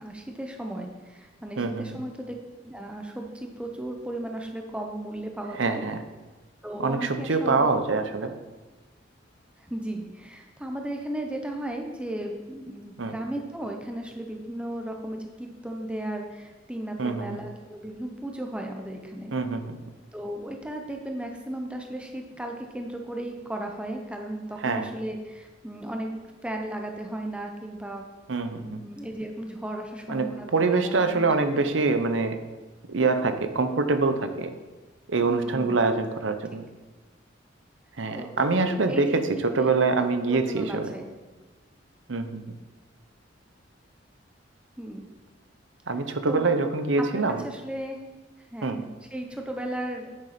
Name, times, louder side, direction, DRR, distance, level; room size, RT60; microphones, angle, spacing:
voice 1, 0.0-2.3 2.6-5.8 6.6-7.7 8.2-8.4 9.6-19.3 20.1-26.1 26.4-28.0 28.6-30.5 30.7-31.2 31.5-31.7 35.3-35.8 38.1-39.2 39.5-39.9 40.3-41.1 44.8-45.1 46.3-46.5 47.0-48.0 48.5-50.1, right 1 dB, 5° right, 2 dB, 0.8 m, -35 dB
voice 2, 1.6-2.0 5.6-6.0 6.8-8.3 13.0-13.1 17.0-17.4 19.3-19.8 24.6-24.9 28.3-28.8 30.1-32.4 32.9-34.5 35.1-36.6 38.0-40.9 42.1-42.4 45.9-47.4 48.6-48.8, right 3 dB, 75° right, 8 dB, 0.8 m, -25 dB
8.9 x 6.6 x 4.3 m, 1.2 s
head